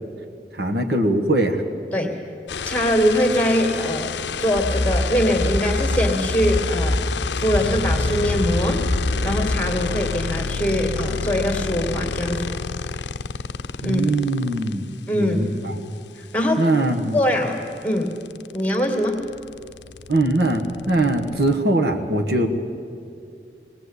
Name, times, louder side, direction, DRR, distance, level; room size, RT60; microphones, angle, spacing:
voice 1, 0.6-1.6 13.8-14.9 15.2-15.9 16.6-17.2 20.1-22.5, right 2 dB, 65° right, 3 dB, 1.5 m, -21 dB
sound 1, 2.5-14.7 16.8-16.9 17.2-21.6, left 5 dB, 85° left, 0.6 m, -29 dB
voice 2, 2.6-7.0 7.4-8.8 9.2-12.6 13.8-14.0 15.1-15.5 16.2-16.6 17.1-18.1 18.5-19.2, equal, 10° left, 2 dB, 2.2 m, -22 dB
sound 2, 4.6-9.6, left 1 dB, 20° right, 2.4 m, -25 dB
21.0 x 18.5 x 8.3 m, 2.4 s
head